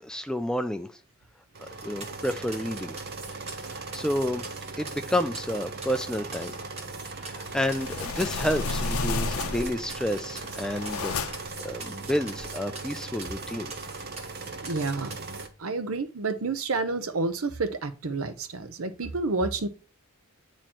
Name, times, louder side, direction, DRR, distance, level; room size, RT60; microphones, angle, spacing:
voice 1, 0.0-0.9 1.6-3.0 3.7-4.4 4.8-6.5 7.1-11.1 11.6-13.7, left 1 dB, 5° left, 0.3 m, -30 dB
sound 1, 1.5-15.5, right 3 dB, 45° right, 0.7 m, -39 dB
sound 2, 1.8-15.5, right 3 dB, 30° right, 1.2 m, -44 dB
sound 3, 7.4-9.9 10.4-11.6, left 4 dB, 90° left, 0.6 m, -31 dB
voice 2, 14.6-19.7, right 3 dB, 80° right, 0.7 m, -30 dB
8.9 x 3.0 x 4.2 m
head